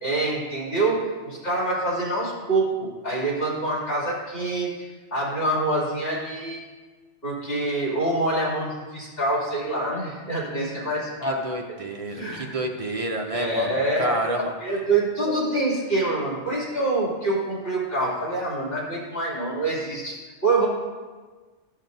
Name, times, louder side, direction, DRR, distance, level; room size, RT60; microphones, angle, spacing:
voice 1, 0.0-6.6 7.2-11.4 12.1-12.6 13.3-14.2 14.6-20.7, right 2 dB, 55° left, -6 dB, 2.9 m, -26 dB
voice 2, 11.2-14.5, right 2 dB, 45° right, 2 dB, 0.4 m, -30 dB
12.5 x 7.2 x 2.6 m, 1.3 s
omnidirectional pair, 1.2 m